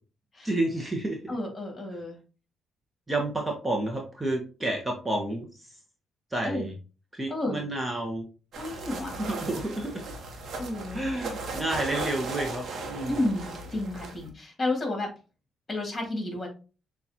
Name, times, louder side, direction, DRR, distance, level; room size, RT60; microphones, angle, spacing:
voice 1, 0.4-1.4 1.9-2.0 3.1-5.7 6.3-6.7 7.1-8.3 9.2-10.1 10.9-13.3, right 1 dB, 15° right, 1 dB, 0.9 m, -30 dB
voice 2, 1.3-2.2 6.4-6.7 7.3-7.6 8.6-9.1 10.6-11.0 13.1-15.1 15.7-16.5, left 2 dB, 25° left, 1 dB, 2.2 m, -31 dB
sound 1, 8.5-14.3, right 3 dB, 60° right, 0.9 m, -37 dB
6.7 x 2.4 x 2.8 m, 0.34 s
cardioid pair, 90°, 0 cm